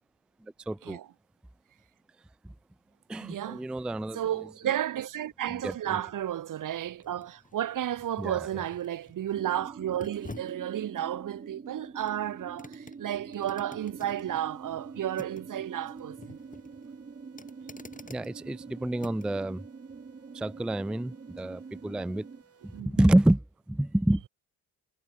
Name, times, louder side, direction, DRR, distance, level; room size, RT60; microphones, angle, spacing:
voice 1, 0.4-1.0 2.4-2.5 3.1-4.5 5.5-6.0 8.2-8.6 18.1-19.6 20.3-22.3 22.6-24.2, right 1 dB, 5° right, 0.4 m, -28 dB
voice 2, 3.2-3.6 4.1-16.4 22.7-22.9, right 11 dB, 55° right, 0.8 m, -32 dB
sound 1, 4.8-19.4 19.9-20.0, left 3 dB, 20° left, 3.7 m, -51 dB
sound 2, 9.3-22.4, right 5 dB, 25° right, 1.0 m, -45 dB
sound 3, 13.8-22.8, right 6 dB, 40° right, 3.0 m, -62 dB
cardioid pair, 95°, 38 cm